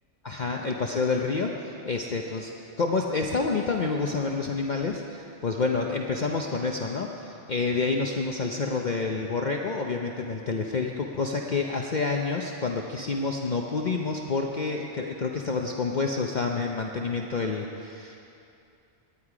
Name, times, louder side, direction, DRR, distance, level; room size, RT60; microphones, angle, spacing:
voice 1, 0.2-2.5 2.8-18.2, left 4 dB, 45° left, 1 dB, 0.7 m, -28 dB
18.5 x 10.0 x 4.9 m, 2.7 s
omnidirectional pair, 1.2 m